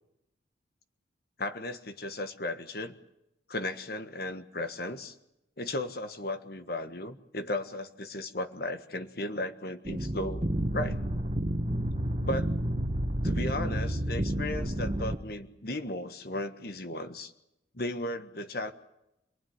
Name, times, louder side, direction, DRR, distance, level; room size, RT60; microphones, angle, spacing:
voice 1, 1.4-3.0 3.5-5.1 5.6-10.5 10.7-11.0 12.2-12.5 13.2-17.3 17.7-18.7, left 1 dB, 55° left, 8 dB, 1.6 m, -35 dB
sound 1, 9.8-15.2, right 1 dB, 30° right, 1.6 m, -30 dB
27.5 x 19.0 x 9.8 m, 0.87 s
head